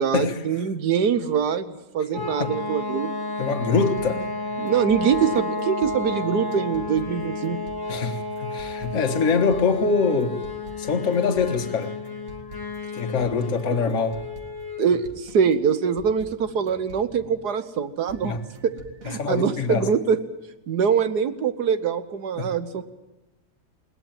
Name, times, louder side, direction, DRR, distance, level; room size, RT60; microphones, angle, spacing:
voice 1, 0.0-3.1 4.6-7.6 14.8-18.4 18.6-18.8 19.0-20.2 20.7-22.8, right 7 dB, 65° right, 1.6 m, -23 dB
sound 1, 2.1-14.9, left 3 dB, 15° left, 1.2 m, -32 dB
voice 2, 3.4-4.3 7.9-10.4 10.8-11.9 13.0-14.2 18.2-18.4 19.2-19.9 22.4-22.6, left 5 dB, 50° left, 1.6 m, -24 dB
sound 2, 3.5-17.7 18.1-19.2, right 3 dB, 50° right, 2.5 m, -46 dB
21.0 x 18.5 x 9.0 m
omnidirectional pair, 1.9 m